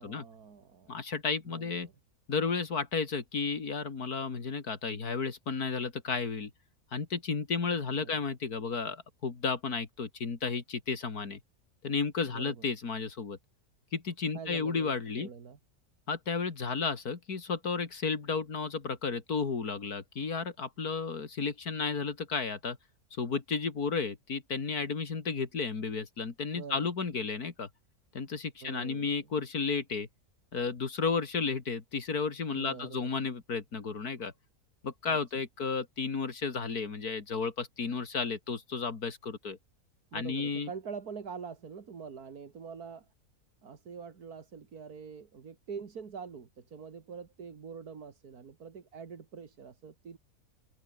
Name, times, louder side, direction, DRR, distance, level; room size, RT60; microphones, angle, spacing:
voice 1, 0.0-1.0 1.5-1.9 8.0-8.2 12.3-12.6 14.3-15.6 26.5-26.9 28.6-29.2 32.5-33.2 35.1-35.2 40.1-43.1 43.6-50.2, right 6 dB, 85° right, 2.5 m, -45 dB
voice 2, 0.9-1.9 2.3-6.5 6.9-11.4 11.8-13.4 13.9-15.3 16.1-22.8 23.2-27.7 28.1-30.1 30.5-34.3 34.8-39.6 40.1-40.7, left 5 dB, 80° left, 2.9 m, -33 dB
omnidirectional pair, 1.6 m